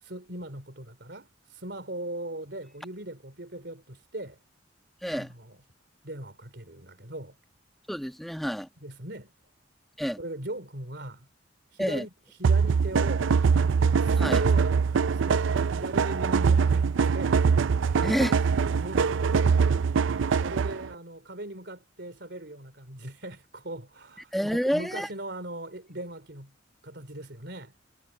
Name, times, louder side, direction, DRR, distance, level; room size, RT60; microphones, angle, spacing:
voice 1, 0.0-4.4 5.1-5.6 6.0-7.4 8.8-9.3 10.2-11.3 11.7-12.1 12.4-13.3 13.8-17.4 17.8-18.1 18.8-19.2 20.4-26.5 26.8-27.7, right 1 dB, 60° right, 3.8 m, -39 dB
voice 2, 7.9-8.7 10.0-10.2 11.8-12.0 14.2-14.4 18.0-18.5 24.3-25.1, equal, ahead, 1.2 m, -28 dB
sound 1, 12.4-20.9, right 5 dB, 85° right, 0.4 m, -23 dB
head